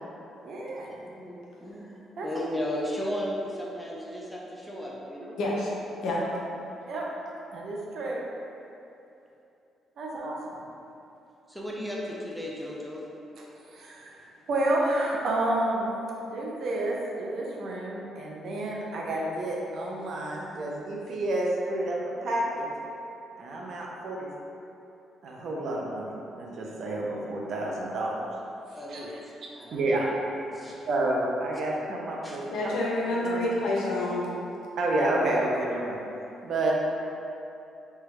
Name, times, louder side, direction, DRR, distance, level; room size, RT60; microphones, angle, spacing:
voice 1, 0.4-1.0 2.2-2.3 6.9-7.1 7.5-8.2 10.0-10.6 13.4-14.1 14.5-15.9 16.2-22.7 23.4-24.3 25.2-28.2 28.9-29.2 29.7-30.1 30.9-32.8 33.2-33.5 34.8-36.0 36.4-36.7, right 1 dB, 65° right, -3 dB, 0.5 m, -30 dB
voice 2, 1.0-5.4 11.5-13.0 28.8-29.1 29.6-29.8 30.5-30.7 32.2-32.4, equal, ahead, -4 dB, 0.6 m, -35 dB
voice 3, 5.4-5.7 6.0-6.2 32.5-34.3, left 1 dB, 80° left, -4 dB, 0.6 m, -28 dB
3.3 x 2.2 x 3.1 m, 2.8 s
cardioid pair, 90°, 0 cm